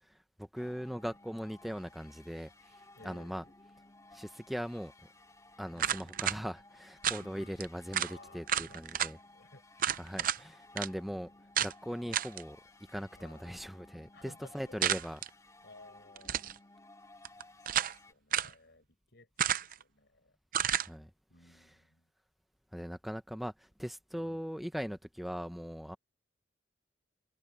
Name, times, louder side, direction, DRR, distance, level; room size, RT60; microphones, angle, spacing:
voice 1, 0.0-3.4 4.1-4.9 5.6-9.2 10.0-11.3 11.6-12.6 12.9-15.2 20.8-21.1 21.5-21.7 22.7-26.0, equal, ahead, 0.6 m, -40 dB
sound 1, 0.6-18.1, left 2 dB, 15° left, 2.1 m, -58 dB
voice 2, 2.9-3.5 5.7-6.2 7.1-7.7 8.0-9.9 13.2-13.4 14.1-14.9 15.6-16.4 17.7-20.4 21.3-22.1 24.1-24.4, left 2 dB, 60° left, 6.1 m, -58 dB
sound 2, 5.8-6.4 7.0-7.2 7.6-7.7 7.9-8.1 8.5-9.1 9.8-10.4 10.8-10.9 11.6-11.7 12.1-12.4 14.8-15.3 16.2-16.6 17.2-18.0 18.3-18.5 19.4-19.8 20.5-20.9, right 10 dB, 45° right, 0.6 m, -31 dB
head